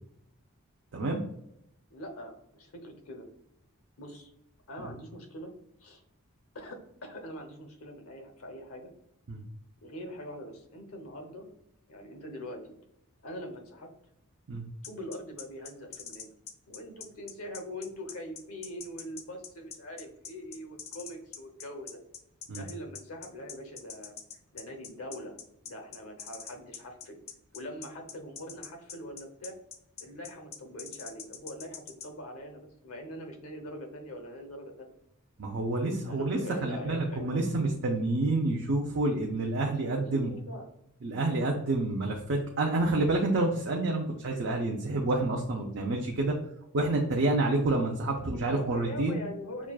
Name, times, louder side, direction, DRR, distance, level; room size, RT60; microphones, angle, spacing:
voice 1, 1.9-3.3 4.0-4.3 4.7-5.5 5.8-6.0 6.5-8.9 9.8-11.5 11.9-12.6 13.2-13.9 14.8-16.3 16.7-22.0 22.5-24.2 24.5-25.4 25.6-27.2 27.5-29.6 30.0-34.9 36.0-37.6 39.9-40.7 48.3-49.7, equal, 75° left, 4 dB, 0.8 m, -43 dB
sound 1, 14.8-32.1, left 7 dB, 30° left, 0.4 m, -44 dB
voice 2, 35.4-40.3 41.0-46.3 46.7-49.2, right 2 dB, 55° right, 0 dB, 0.5 m, -28 dB
6.0 x 2.2 x 2.3 m, 0.79 s
head